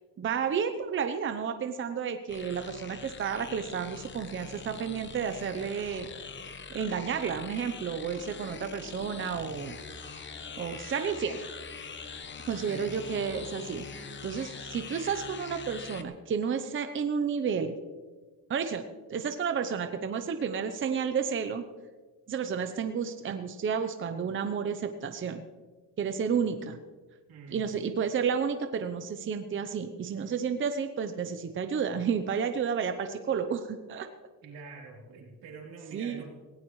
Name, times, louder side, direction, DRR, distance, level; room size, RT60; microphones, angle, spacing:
voice 1, 0.2-6.1 6.7-9.8 10.6-11.4 12.4-17.7 18.5-21.7 22.3-25.4 26.0-26.8 27.5-34.1 35.9-36.2, right 6 dB, 35° right, 8 dB, 0.7 m, -31 dB
sound 1, 2.3-16.0, left 5 dB, 30° left, 1.1 m, -43 dB
voice 2, 27.3-27.7 34.4-36.3, right 4 dB, 80° right, -1 dB, 3.8 m, -45 dB
18.5 x 17.0 x 3.2 m, 1.4 s
cardioid pair, 140°, 35 cm